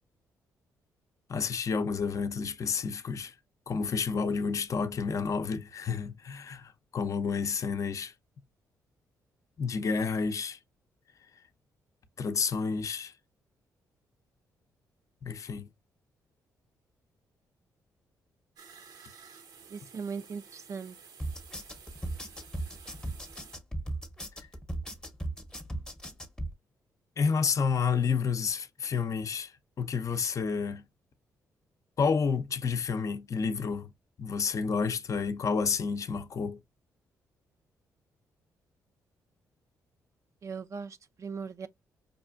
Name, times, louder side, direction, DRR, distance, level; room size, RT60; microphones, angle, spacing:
voice 1, 1.3-3.3 3.7-8.1 9.6-10.6 12.2-13.1 15.2-15.7 27.2-29.5 29.8-30.8 32.0-33.9 34.2-36.6, left 5 dB, 50° left, 0.6 m, -30 dB
sound 1, 18.6-23.6, right 6 dB, 80° right, 0.8 m, -52 dB
voice 2, 19.7-21.0 40.4-41.7, right 5 dB, 45° right, 0.4 m, -39 dB
sound 2, 21.2-26.5, right 1 dB, 10° left, 0.8 m, -37 dB
5.2 x 2.4 x 2.3 m
supercardioid pair, 60°, 7 cm